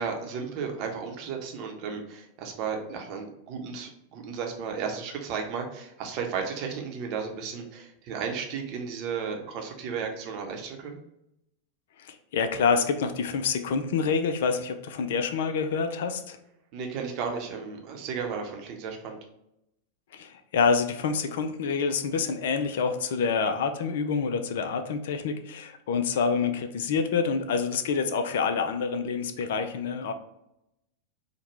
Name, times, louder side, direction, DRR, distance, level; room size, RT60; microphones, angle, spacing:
voice 1, 0.0-11.0 16.7-19.2, right 6 dB, 40° right, 2 dB, 0.7 m, -34 dB
voice 2, 12.0-16.4 20.1-30.1, left 5 dB, 55° left, 8 dB, 0.4 m, -27 dB
4.6 x 2.1 x 3.2 m, 0.83 s
figure-of-eight pair, 90°, 0 cm